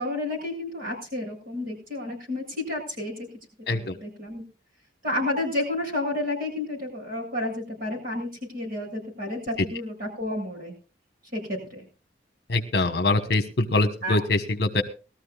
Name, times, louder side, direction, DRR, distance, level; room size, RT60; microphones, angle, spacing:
voice 1, 0.0-3.3 3.7-4.4 5.0-10.7 11.3-11.9 14.0-14.2, left 1 dB, 55° right, 1 dB, 7.4 m, -31 dB
voice 2, 12.5-14.8, left 2 dB, 60° left, 8 dB, 1.3 m, -24 dB
21.0 x 13.5 x 2.4 m, 0.33 s
head